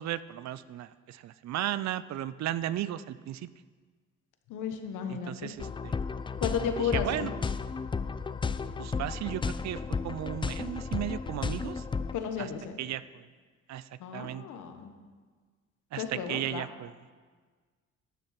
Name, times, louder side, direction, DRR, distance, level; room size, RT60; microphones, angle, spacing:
voice 1, 0.0-3.5 5.1-6.0 6.8-7.3 8.8-11.9 12.4-12.5 12.8-13.3 13.7-14.4 15.9-16.9, right 12 dB, 65° right, 16 dB, 0.5 m, -35 dB
voice 2, 4.5-5.5 6.4-7.3 12.1-12.8 14.0-14.9 16.0-16.7, left 7 dB, 85° left, 6 dB, 1.2 m, -33 dB
sound 1, 5.6-12.1, left 5 dB, 15° left, 0.3 m, -33 dB
12.0 x 7.0 x 5.8 m, 1.5 s
cardioid pair, 90°, 30 cm